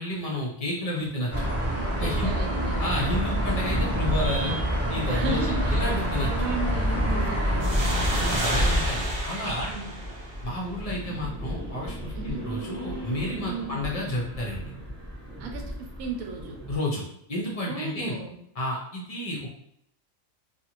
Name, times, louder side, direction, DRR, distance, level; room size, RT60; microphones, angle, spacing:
voice 1, 0.0-1.5 1.9-2.4 2.8-4.6 4.9-6.5 8.0-9.7 10.4-14.6 16.7-17.0 17.3-18.1 18.6-19.5, left 1 dB, 50° left, -3 dB, 0.4 m, -31 dB
sound 1, 1.3-8.4, equal, 20° right, 0.4 m, -26 dB
voice 2, 2.0-2.9 5.1-5.8 6.2-7.9 9.7-10.0 12.1-12.4 13.5-13.8 15.4-16.6 17.7-18.4, right 3 dB, 90° right, 3 dB, 1.0 m, -34 dB
sound 2, 7.6-11.0, right 1 dB, 60° right, 0.8 m, -31 dB
sound 3, 7.7-16.8, equal, 5° left, 0.9 m, -34 dB
2.5 x 2.3 x 2.9 m, 0.71 s
omnidirectional pair, 1.4 m